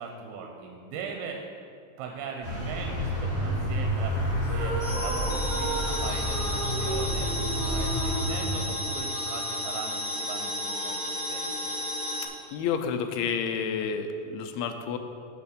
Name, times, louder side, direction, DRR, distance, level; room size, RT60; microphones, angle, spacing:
voice 1, 0.0-1.4 2.0-4.2 4.5-11.6, right 5 dB, 85° right, 2 dB, 2.6 m, -40 dB
Vehicle, 2.4-8.8, equal, 30° right, 1.7 m, -30 dB
sound 1, 4.4-9.2, right 2 dB, 60° right, 2.2 m, -35 dB
sound 2, 4.8-12.3, left 1 dB, 70° left, 0.8 m, -33 dB
voice 2, 12.5-15.0, left 6 dB, 85° left, 6 dB, 2.5 m, -30 dB
7.0 x 6.7 x 5.1 m, 2.4 s
omnidirectional pair, 4.4 m